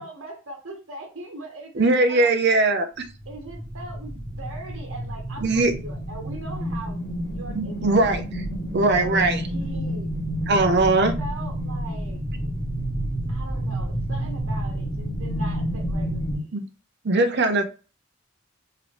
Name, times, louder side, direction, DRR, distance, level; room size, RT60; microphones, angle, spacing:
voice 1, 0.0-2.3 3.2-8.0 8.8-10.1 10.6-12.2 13.3-16.7, right 2 dB, 75° right, 2 dB, 1.3 m, -40 dB
voice 2, 1.7-2.9 5.4-5.7 7.5-8.2 8.7-9.4 10.5-11.1 16.5-16.6 17.0-17.6, right 2 dB, 55° right, 7 dB, 0.6 m, -20 dB
sound 1, 3.1-16.4, equal, 20° left, 2.0 m, -29 dB
3.7 x 3.4 x 3.0 m, 0.35 s
head